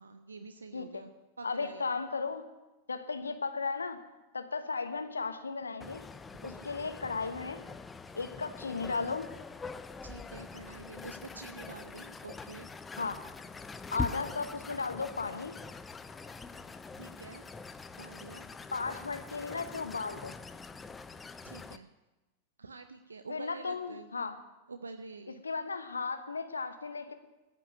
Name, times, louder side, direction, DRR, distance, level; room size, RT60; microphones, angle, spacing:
voice 1, 0.0-2.0 6.4-6.8 10.0-12.7 17.0-17.4 18.0-18.4 21.4-21.9 22.6-24.1 24.7-25.4, right 4 dB, 75° right, 9 dB, 0.5 m, -47 dB
voice 2, 0.7-1.0 1.4-2.4 2.9-4.0 4.3-6.1 6.4-7.6 8.1-9.3 13.0-13.2 13.9-15.6 18.7-20.4 23.3-24.4 25.4-27.1, left 4 dB, 75° left, 9 dB, 1.1 m, -35 dB
sound 1, 5.8-21.8, left 4 dB, 15° left, 0.6 m, -44 dB
14.5 x 6.0 x 9.2 m, 1.1 s
figure-of-eight pair, 90°, 0 cm